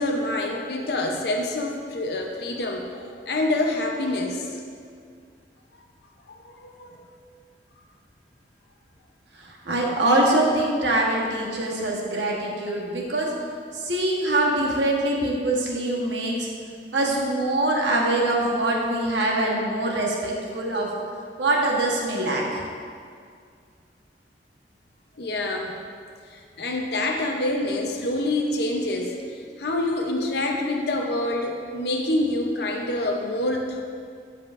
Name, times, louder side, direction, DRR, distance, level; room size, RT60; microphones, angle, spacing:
voice 1, 0.0-4.5 6.3-7.0 25.2-25.7 26.3-33.8, left 1 dB, 65° left, 1 dB, 0.7 m, -27 dB
voice 2, 9.7-13.3 13.9-16.5 16.9-20.9 21.4-22.6, right 1 dB, 85° right, -2 dB, 1.2 m, -23 dB
13.0 x 5.0 x 2.5 m, 2.2 s
head